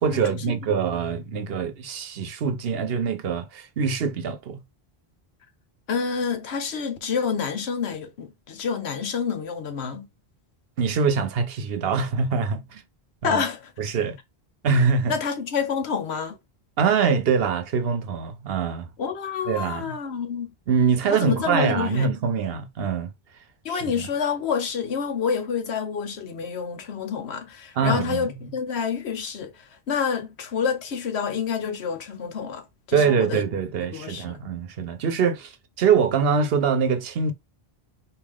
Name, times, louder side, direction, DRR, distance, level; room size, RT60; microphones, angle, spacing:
voice 1, 0.0-4.6 10.8-12.8 13.2-13.4 13.8-14.2 14.6-15.2 16.8-18.9 19.5-20.0 20.7-23.1 23.7-23.9 27.8-28.3 32.9-35.5 35.8-37.3, right 6 dB, 70° right, 0.9 m, -24 dB
voice 2, 5.9-10.1 13.2-13.7 15.1-16.4 19.0-20.5 21.1-22.1 23.6-33.4 33.8-34.4, left 6 dB, 90° left, 1.2 m, -28 dB
4.7 x 2.8 x 3.5 m
omnidirectional pair, 1.1 m